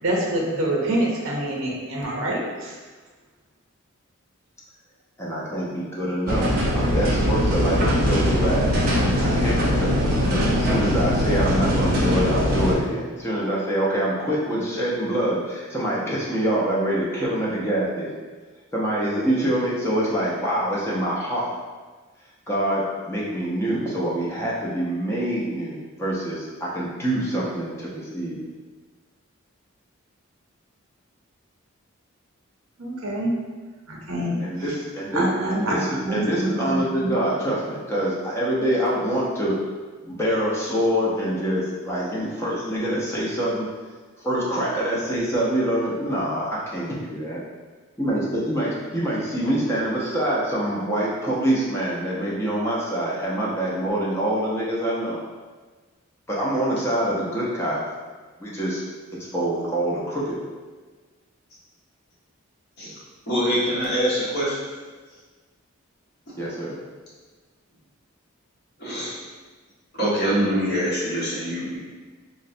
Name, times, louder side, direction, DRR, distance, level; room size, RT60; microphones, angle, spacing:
voice 1, 0.0-2.7 32.8-33.3 33.9-34.4 35.1-37.2, right 1 dB, 85° right, -2 dB, 0.6 m, -26 dB
voice 2, 5.2-8.7 9.2-18.1 18.7-21.5 22.5-28.4 34.4-39.6 40.0-43.7 44.2-47.4 48.0-55.2 56.3-57.8 58.4-58.8 59.3-60.4 66.4-66.8, right 1 dB, 10° left, -6 dB, 0.5 m, -25 dB
sound 1, 6.3-12.8, equal, 45° right, 0.5 m, -21 dB
voice 3, 63.3-64.6 66.3-66.4 68.8-69.2 69.9-71.8, equal, 50° left, -9 dB, 1.1 m, -24 dB
3.8 x 2.1 x 2.5 m, 1.4 s
head